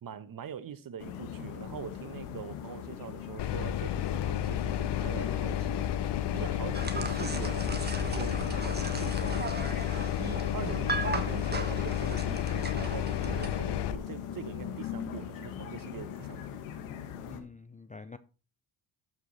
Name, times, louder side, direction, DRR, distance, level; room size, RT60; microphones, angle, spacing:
voice 1, 0.0-5.9 6.3-7.7 8.0-9.6 10.2-16.6, right 8 dB, 45° right, 1.0 m, -43 dB
sound 1, 1.0-17.4, left 8 dB, 90° left, 1.5 m, -41 dB
sound 2, 3.4-14.0, left 11 dB, 55° left, 0.8 m, -31 dB
sound 3, 6.7-13.6, right 3 dB, 20° right, 1.3 m, -37 dB
voice 2, 17.3-18.2, left 4 dB, 15° left, 0.4 m, -47 dB
13.5 x 4.8 x 4.1 m
cardioid pair, 85°, 49 cm